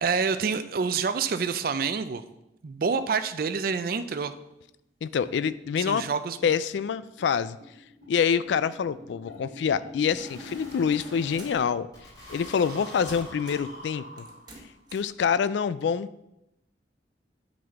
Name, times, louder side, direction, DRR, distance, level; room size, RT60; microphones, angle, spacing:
voice 1, 0.0-2.2 2.6-4.3 5.8-6.4, right 5 dB, 50° right, 10 dB, 0.4 m, -27 dB
sound 1, 4.7-4.8 5.1-5.2 5.5-5.6 5.9-6.1 6.3-11.5 11.9-14.7, equal, 20° left, 3.1 m, -45 dB
voice 2, 5.0-6.0 6.4-7.6 8.1-11.9 12.3-14.3 14.9-16.1, left 7 dB, 75° left, 16 dB, 0.3 m, -26 dB
sound 2, 10.5-11.6 12.6-12.8 13.1-13.8 14.2-15.1, right 1 dB, 25° right, 1.3 m, -47 dB
9.2 x 4.1 x 5.8 m, 0.88 s
head